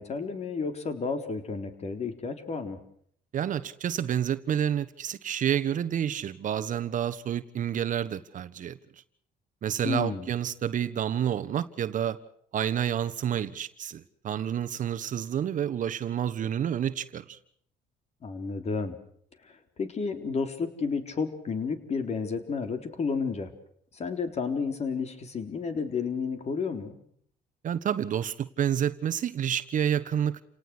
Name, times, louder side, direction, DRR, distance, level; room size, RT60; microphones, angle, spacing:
voice 1, 0.0-2.8 9.8-10.3 18.2-19.0 19.8-23.5 23.9-27.0, left 5 dB, 40° left, 3.9 m, -31 dB
voice 2, 3.3-8.8 9.6-12.2 12.5-17.4 27.6-30.4, right 9 dB, 50° right, 1.3 m, -29 dB
29.5 x 18.5 x 6.2 m
cardioid pair, 110°, 17 cm